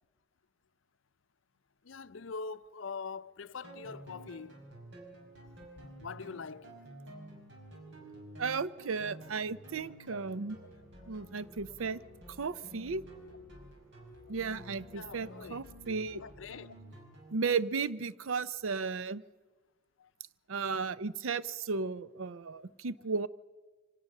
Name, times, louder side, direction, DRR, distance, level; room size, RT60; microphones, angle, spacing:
voice 1, 1.8-4.6 6.0-6.7 14.9-15.6 16.1-16.7 18.9-19.0 20.0-20.1, left 5 dB, 65° left, 0.6 m, -43 dB
sound 1, 3.6-17.4, right 1 dB, 60° right, 5.4 m, -51 dB
voice 2, 8.4-10.6 11.1-12.0 12.4-13.0 14.3-16.2 17.3-19.2 20.5-23.3, right 5 dB, 80° right, 0.6 m, -34 dB
24.5 x 18.0 x 6.6 m
head